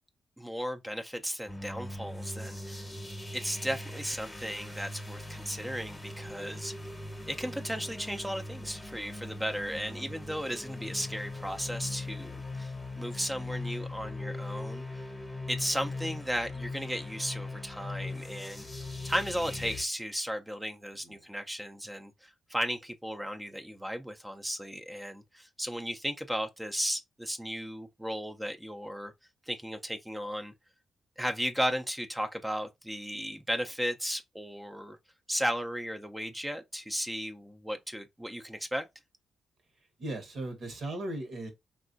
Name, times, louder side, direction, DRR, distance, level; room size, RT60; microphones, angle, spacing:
voice 1, 0.4-2.9 3.3-6.9 7.3-15.0 15.5-18.7 19.0-29.1 29.5-30.5 31.2-35.0 35.3-38.9, equal, 10° right, 0.5 m, -35 dB
sound 1, 1.5-19.8, left 2 dB, 15° left, 0.9 m, -40 dB
voice 2, 2.9-3.2 9.8-10.2 21.0-21.3 40.0-41.5, right 1 dB, 70° right, 1.1 m, -39 dB
3.5 x 2.4 x 2.5 m
cardioid pair, 60°, 0 cm